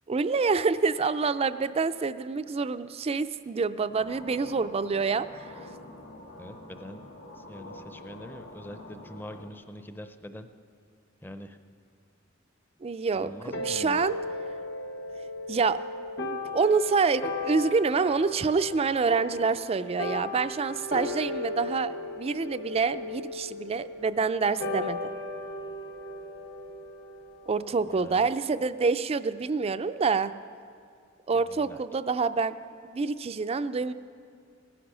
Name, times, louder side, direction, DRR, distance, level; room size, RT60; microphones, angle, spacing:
voice 1, 0.1-5.5 12.8-14.2 15.5-15.8 16.2-25.1 27.5-30.3 31.3-32.5 32.8-33.9, right 4 dB, 30° right, 13 dB, 0.4 m, -27 dB
sound 1, 4.0-9.5, left 1 dB, 90° left, 2.1 m, -46 dB
voice 2, 6.4-10.5 11.2-11.6 13.1-14.0 27.9-28.3 31.3-31.8, equal, 10° left, 8 dB, 0.6 m, -44 dB
sound 2, 13.5-28.3, left 2 dB, 60° left, 0.9 m, -36 dB
17.5 x 10.0 x 6.2 m, 2.3 s
head